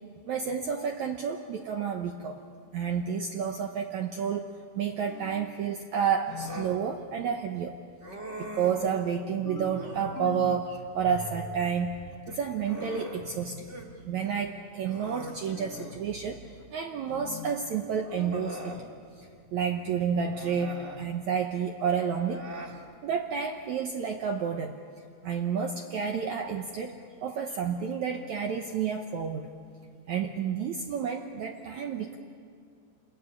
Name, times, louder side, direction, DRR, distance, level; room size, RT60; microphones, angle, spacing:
voice 1, 0.3-2.4 2.7-7.8 8.4-12.0 12.3-18.7 19.2-22.4 23.0-24.7 25.2-29.5 30.1-32.2, right 7 dB, 70° right, 4 dB, 1.8 m, -30 dB
sound 1, 5.1-5.6 6.3-6.8 9.5-10.7 11.1-11.7 12.7-13.2 15.5-16.0 17.1-17.6, left 6 dB, 60° left, 1.9 m, -42 dB
Human voice, 6.3-6.8 8.0-8.9 9.6-10.2 12.1-13.9 14.2-14.4 14.8-16.1 17.3-17.4 18.0-18.9 20.2-21.1 22.1-22.8, equal, 30° right, 1.3 m, -42 dB
27.0 x 22.0 x 9.7 m, 2.2 s
omnidirectional pair, 4.5 m